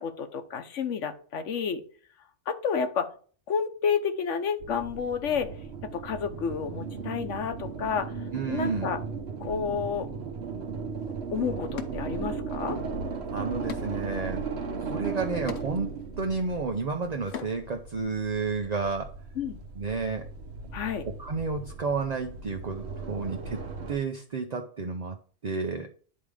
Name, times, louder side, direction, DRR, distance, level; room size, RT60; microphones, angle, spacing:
voice 1, 0.0-1.8 2.5-3.1 3.5-5.5 5.9-8.1 8.5-9.0 9.4-10.1 11.3-12.8 19.4-19.6 20.7-21.0, left 6 dB, 85° left, 8 dB, 1.3 m, -30 dB
sound 1, 4.6-24.0, right 5 dB, 65° right, 1.1 m, -37 dB
voice 2, 8.3-8.9 13.3-14.4 14.8-19.2 19.8-20.3 21.1-23.6 23.9-25.2 25.4-25.9, right 4 dB, 40° right, 4 dB, 0.7 m, -31 dB
sound 2, 11.0-11.1 11.8-12.7 13.0-17.8, left 8 dB, 65° left, 1.1 m, -44 dB
9.8 x 3.7 x 4.9 m, 0.43 s
omnidirectional pair, 1.2 m